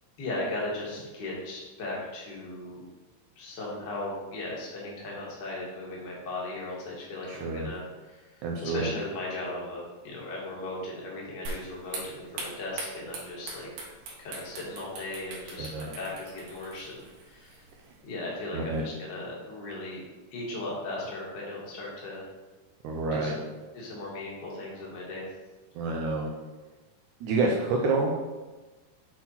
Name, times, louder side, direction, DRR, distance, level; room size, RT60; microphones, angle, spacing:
voice 1, 0.2-2.8 3.3-13.7 14.2-17.7 18.0-20.0 20.3-22.3 23.1-23.4 23.7-25.2, left 2 dB, 40° left, -4 dB, 1.7 m, -37 dB
voice 2, 7.3-7.7 8.4-8.9 15.6-15.9 18.5-18.8 22.8-23.3 25.7-26.3 27.2-28.3, right 3 dB, 85° right, 0 dB, 1.7 m, -28 dB
sound 1, 11.5-18.0, right 3 dB, 65° right, 2.5 m, -42 dB
7.6 x 4.2 x 4.2 m, 1.2 s
omnidirectional pair, 4.1 m